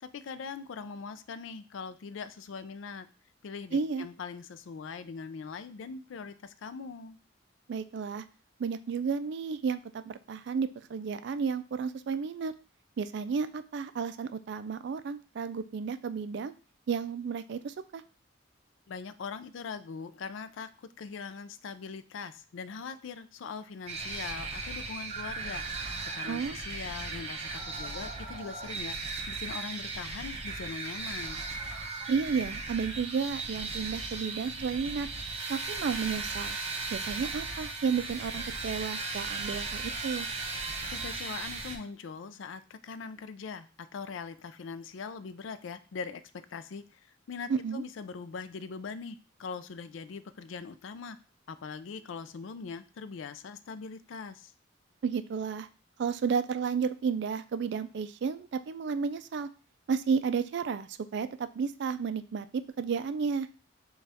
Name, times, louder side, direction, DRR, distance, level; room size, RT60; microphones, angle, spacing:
voice 1, 0.0-3.1 3.4-7.2 18.9-25.6 26.0-27.5 27.8-29.0 29.3-31.4 40.9-46.2 46.5-51.2 51.5-54.5, left 5 dB, 75° left, 13 dB, 0.4 m, -41 dB
voice 2, 3.7-4.1 7.7-8.2 8.6-12.5 13.0-16.5 16.9-18.0 26.3-26.6 32.1-35.1 35.5-36.6 36.9-40.3 47.5-47.8 55.0-55.7 56.0-59.5 59.9-62.5 62.8-63.5, right 5 dB, 60° right, 12 dB, 0.3 m, -32 dB
sound 1, 23.9-41.8, right 3 dB, 30° right, 0.7 m, -37 dB
6.5 x 2.4 x 3.4 m, 0.36 s
head